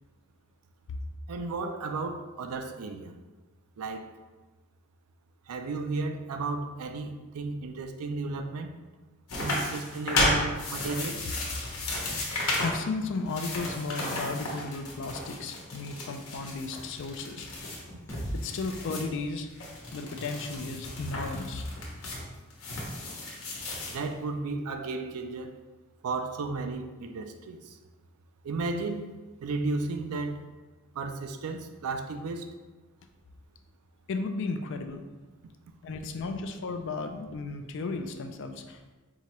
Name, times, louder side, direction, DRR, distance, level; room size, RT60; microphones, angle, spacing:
voice 1, 1.3-3.1 3.8-4.1 5.5-8.7 9.4-11.2 23.9-25.5 26.0-27.8 28.4-29.1 29.4-30.5 31.0-32.5, right 3 dB, 75° right, 7 dB, 0.4 m, -34 dB
sound 1, 9.3-12.8 13.2-19.1 19.5-24.0, left 1 dB, 70° left, 0.9 m, -33 dB
voice 2, 12.6-17.5 18.3-21.7 34.1-35.0 35.8-38.9, left 3 dB, 55° left, 6 dB, 0.3 m, -34 dB
sound 2, 18.1-22.0, equal, 10° left, 0.7 m, -42 dB
4.6 x 2.8 x 3.0 m, 1.2 s
head